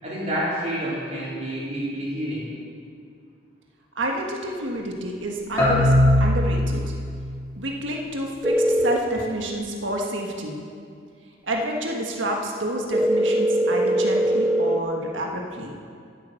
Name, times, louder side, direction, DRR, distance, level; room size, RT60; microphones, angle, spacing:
voice 1, 0.0-2.4, equal, 35° right, -7 dB, 4.1 m, -28 dB
voice 2, 3.9-6.9 7.6-10.6 11.4-15.7, right 1 dB, 75° right, 0 dB, 1.5 m, -29 dB
sound 1, 5.6-7.3, left 1 dB, 15° left, 3.7 m, -19 dB
sound 2, 8.4-9.0 12.9-14.8, right 1 dB, 10° right, 0.6 m, -21 dB
14.0 x 8.7 x 6.5 m, 2.3 s
head